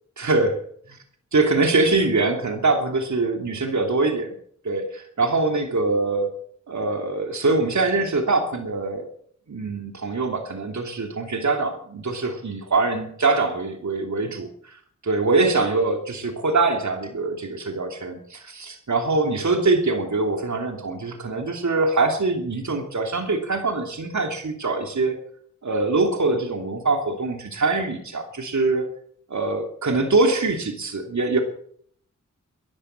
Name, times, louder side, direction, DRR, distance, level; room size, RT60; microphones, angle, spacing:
voice 1, 0.2-0.6 0.9-1.0 1.3-4.3 4.6-6.3 6.7-9.1 9.5-14.8 15.0-25.2 25.6-28.8 29.3-31.4, right 3 dB, 65° right, 4 dB, 2.9 m, -23 dB
15.0 x 11.5 x 7.4 m, 0.63 s
cardioid pair, 50°, 31 cm